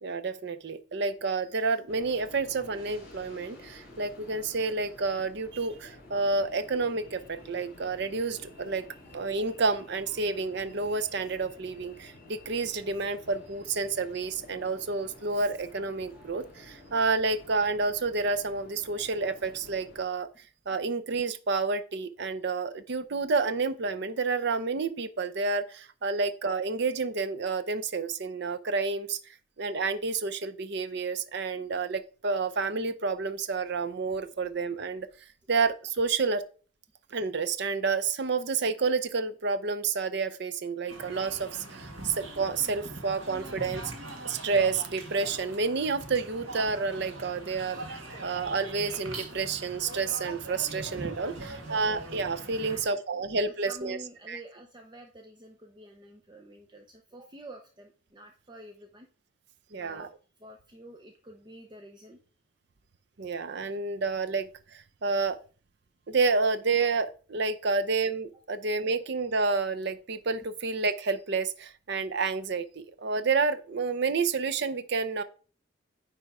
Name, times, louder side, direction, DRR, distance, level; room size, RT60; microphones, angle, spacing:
voice 1, 0.0-8.8 9.1-20.3 20.7-29.2 29.6-35.1 35.5-36.4 37.1-43.8 44.2-54.0 54.3-54.4 59.7-60.1 63.2-65.4 66.1-75.2, right 4 dB, 60° right, 0.6 m, -29 dB
sound 1, 1.9-20.0, left 1 dB, 45° left, 4.2 m, -51 dB
sound 2, 40.9-52.8, right 2 dB, 85° right, 2.0 m, -41 dB
voice 2, 51.3-51.9 52.6-59.1 59.8-60.1 60.4-62.2, right 1 dB, 20° right, 0.7 m, -49 dB
9.7 x 3.5 x 4.8 m
head